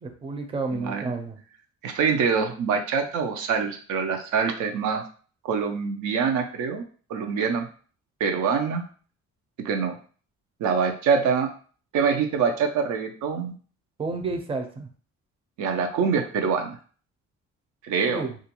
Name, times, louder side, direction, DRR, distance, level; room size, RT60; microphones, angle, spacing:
voice 1, 0.0-1.4 14.0-14.9 18.1-18.3, right 3 dB, 20° right, 4 dB, 0.5 m, -30 dB
voice 2, 0.7-1.1 1.8-5.0 5.4-6.8 7.1-7.7 8.2-8.8 9.6-10.0 10.6-11.5 11.9-13.5 15.6-16.8 17.8-18.2, right 6 dB, 80° right, 4 dB, 0.5 m, -25 dB
2.4 x 2.2 x 2.9 m, 0.41 s
cardioid pair, 90°, 30 cm